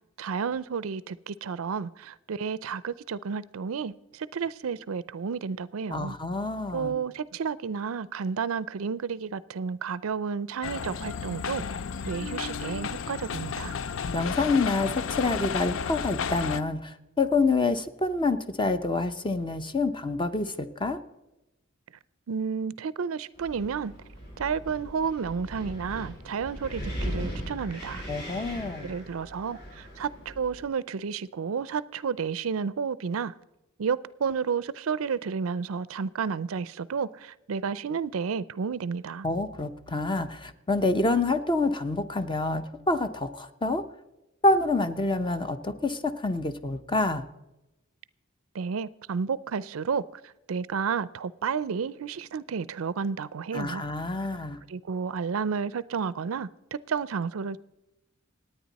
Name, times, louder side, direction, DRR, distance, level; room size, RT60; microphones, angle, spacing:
voice 1, 0.2-6.2 6.7-11.6 12.0-13.8 22.3-23.9 24.4-28.0 28.8-33.3 33.8-39.3 48.5-53.8 54.7-57.6, right 6 dB, 80° right, 0.5 m, -31 dB
voice 2, 5.9-7.0 14.1-21.0 28.1-28.9 39.2-43.8 44.4-47.2 53.5-54.6, left 3 dB, 25° left, 0.8 m, -27 dB
sound 1, 10.6-16.6, left 6 dB, 65° left, 0.5 m, -32 dB
Wind, 23.3-30.7, equal, 50° left, 5.3 m, -39 dB
27.0 x 9.2 x 4.1 m
head